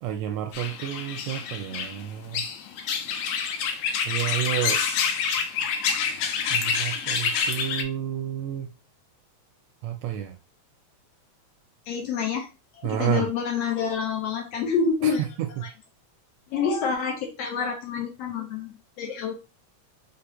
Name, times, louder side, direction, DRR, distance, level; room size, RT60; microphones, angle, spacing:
voice 1, 0.0-2.4 4.1-4.8 6.5-8.7 9.8-10.4 12.8-13.3 15.0-15.7, right 12 dB, 80° right, 1.6 m, -30 dB
sound 1, 0.5-7.8, left 6 dB, 90° left, 2.0 m, -27 dB
voice 2, 11.9-12.5 12.8-15.2 16.5-19.3, left 6 dB, 70° left, 1.6 m, -27 dB
4.7 x 3.5 x 2.9 m
omnidirectional pair, 3.3 m